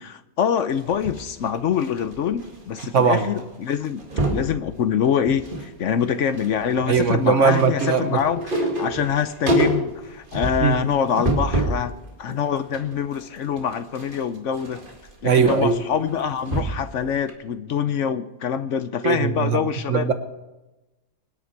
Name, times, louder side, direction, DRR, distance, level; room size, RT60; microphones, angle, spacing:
voice 1, 0.0-4.1 4.3-11.9 12.2-14.8 15.2-20.1, left 8 dB, 65° left, 12 dB, 1.0 m, -25 dB
sound 1, 0.7-2.9 3.1-3.4 3.7-4.5 5.0-5.7 6.0-11.9 12.3-16.9 17.3-17.4, right 1 dB, 35° right, 2.2 m, -27 dB
voice 2, 2.9-3.3 6.9-8.2 10.6-10.8 15.2-15.8 19.0-19.6 19.9-20.1, right 6 dB, 60° right, 8 dB, 1.4 m, -19 dB
24.0 x 10.0 x 4.6 m, 1.0 s
omnidirectional pair, 1.5 m